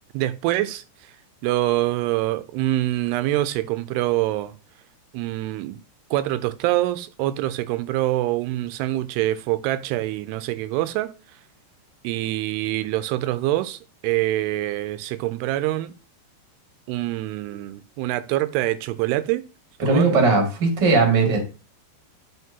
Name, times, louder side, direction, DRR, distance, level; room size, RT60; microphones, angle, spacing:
voice 1, 0.1-0.8 1.4-4.5 5.1-5.8 6.1-11.1 12.0-15.9 16.9-19.4 19.9-20.2, right 15 dB, 90° right, 2.7 m, -25 dB
voice 2, 19.8-21.4, right 3 dB, 35° right, 1.9 m, -18 dB
9.4 x 5.3 x 2.8 m
omnidirectional pair, 4.6 m